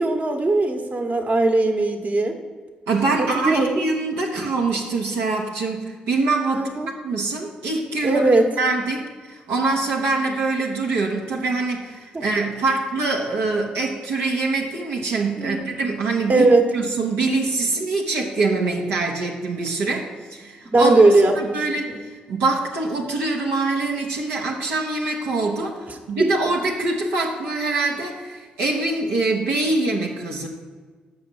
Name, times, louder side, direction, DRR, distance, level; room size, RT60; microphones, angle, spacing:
voice 1, 0.0-2.3 3.3-3.7 6.5-6.9 8.0-8.4 15.4-15.6 16.3-16.7 20.6-22.0 25.9-26.3, right 2 dB, 40° right, 4 dB, 1.3 m, -19 dB
voice 2, 2.9-6.7 7.0-8.3 8.6-16.5 16.7-21.0 21.3-21.9 22.3-30.5, right 3 dB, 80° right, -2 dB, 1.0 m, -24 dB
6.9 x 5.6 x 7.0 m, 1.5 s
hypercardioid pair, 40°, 4 cm